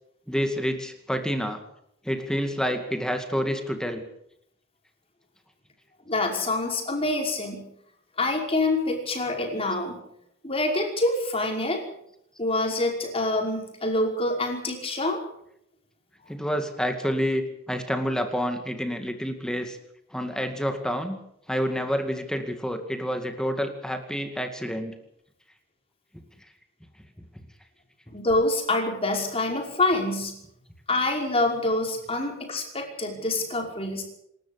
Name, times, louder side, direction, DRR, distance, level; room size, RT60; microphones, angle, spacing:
voice 1, 0.3-1.6 2.0-4.0 16.3-19.8 20.1-21.2 21.5-24.9, equal, 5° left, 6 dB, 2.2 m, -28 dB
voice 2, 6.1-7.7 8.2-10.0 10.4-11.8 12.4-15.2 28.1-30.4 30.9-34.0, left 2 dB, 30° left, 1 dB, 5.5 m, -26 dB
27.5 x 13.0 x 8.3 m, 0.76 s
head